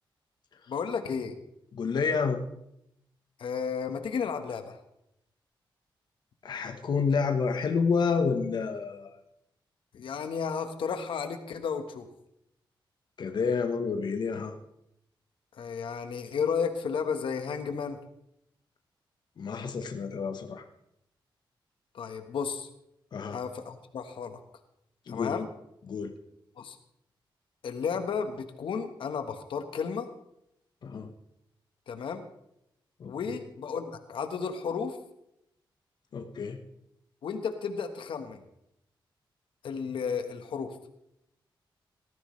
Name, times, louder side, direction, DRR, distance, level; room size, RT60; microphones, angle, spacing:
voice 1, 0.7-1.3 3.4-4.8 9.9-12.1 15.6-18.0 21.9-22.7 23.3-24.4 25.1-25.5 26.6-26.8 27.6-30.1 31.9-32.2 33.1-35.0 37.2-38.4 39.6-40.7, left 6 dB, 80° left, 7 dB, 1.3 m, -33 dB
voice 2, 1.7-2.4 6.4-9.2 13.2-14.5 19.4-20.6 23.1-23.4 25.1-25.4 25.9-26.1 30.8-31.1 33.0-33.4 36.1-36.6, left 5 dB, 55° left, 5 dB, 1.2 m, -29 dB
18.5 x 14.5 x 3.2 m, 0.79 s
wide cardioid pair, 150°, 9 cm